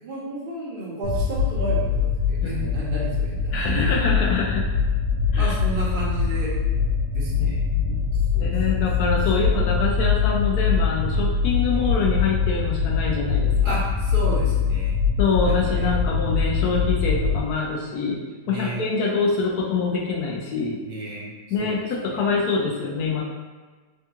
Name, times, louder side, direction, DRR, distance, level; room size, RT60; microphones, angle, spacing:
voice 1, 0.0-3.5 5.3-6.6 7.1-7.6 8.3-8.8 9.4-9.5 11.7-12.1 13.6-14.9 15.4-15.9 18.5-18.8 20.8-21.3 21.6-21.8 22.1-22.4, right 2 dB, 50° right, -5 dB, 0.7 m, -32 dB
sound 1, 1.0-17.4, left 5 dB, 75° right, 1.1 m, -23 dB
voice 2, 3.5-4.6 5.3-5.5 7.4-8.0 8.4-13.8 15.2-18.2 18.5-20.8 21.5-23.2, left 4 dB, 75° left, -2 dB, 1.1 m, -25 dB
3.5 x 2.3 x 2.8 m, 1.4 s
omnidirectional pair, 1.7 m